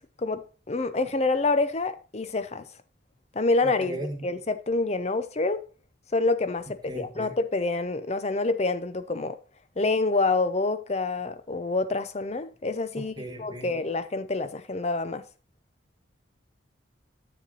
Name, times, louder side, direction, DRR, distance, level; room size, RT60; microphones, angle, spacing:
voice 1, 0.2-2.7 3.3-5.6 6.1-9.4 9.8-15.2, left 3 dB, 35° left, 0.6 m, -27 dB
voice 2, 6.9-7.3 13.2-13.7, right 1 dB, 20° right, 1.5 m, -36 dB
7.7 x 7.0 x 4.0 m
head